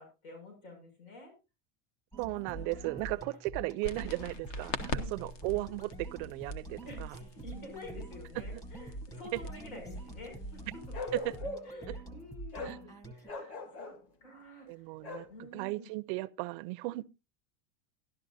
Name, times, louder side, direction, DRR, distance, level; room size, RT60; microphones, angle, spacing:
voice 1, 0.0-1.3 2.5-3.4 4.9-5.2 6.9-10.6 10.9-11.0 11.6-13.9 14.2-14.9 15.3-15.9, left 1 dB, 85° left, 6.1 m, -49 dB
sound 1, 2.1-13.3, right 2 dB, 10° left, 0.9 m, -45 dB
voice 2, 2.2-6.8 11.2-11.4 12.6-12.8 14.7-15.3 15.5-17.0, right 21 dB, 40° right, 0.4 m, -36 dB
sound 2, 3.8-11.4, left 3 dB, 60° left, 1.4 m, -44 dB
Bark, 10.9-11.8 12.5-12.8 13.2-14.0 15.0-15.3, left 3 dB, 35° left, 1.6 m, -40 dB
12.5 x 11.5 x 2.6 m
supercardioid pair, 155°, 42 cm